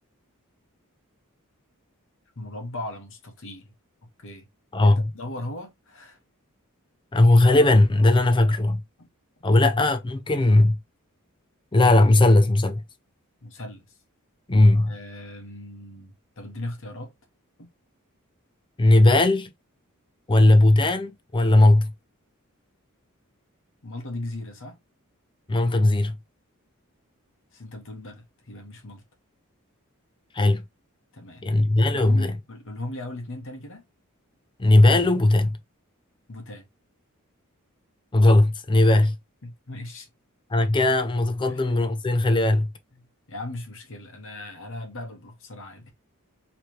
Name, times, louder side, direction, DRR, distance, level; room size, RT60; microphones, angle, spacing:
voice 1, 2.4-3.7 4.0-4.5 4.8-6.2 9.0-9.1 13.4-14.0 14.8-17.1 17.6-17.7 23.8-24.8 27.5-29.0 31.1-31.6 32.0-33.9 36.3-36.7 39.4-40.1 41.5-41.8 42.9-45.9, left 1 dB, 65° left, 1.1 m, -38 dB
voice 2, 4.7-5.0 7.1-8.8 9.4-10.8 11.7-12.8 14.5-14.9 18.8-19.5 20.3-21.9 25.5-26.2 30.3-30.6 31.4-32.3 34.6-35.6 38.1-39.2 40.5-42.7, left 2 dB, 20° left, 0.5 m, -18 dB
4.8 x 3.2 x 2.8 m
head